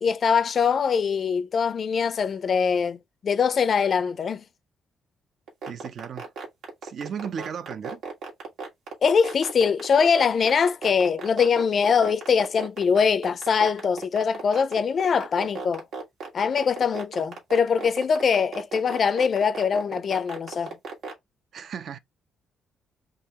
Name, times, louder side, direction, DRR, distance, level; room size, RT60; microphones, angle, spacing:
voice 1, 0.0-4.4 9.0-15.8 16.3-20.8, left 6 dB, 50° left, 0.4 m, -23 dB
sound 1, 5.5-21.1, right 5 dB, 75° right, 1.5 m, -35 dB
voice 2, 5.7-6.3 6.8-8.0 21.5-22.0, right 7 dB, 60° right, 0.4 m, -35 dB
3.7 x 3.1 x 2.8 m
cardioid pair, 105°, 0 cm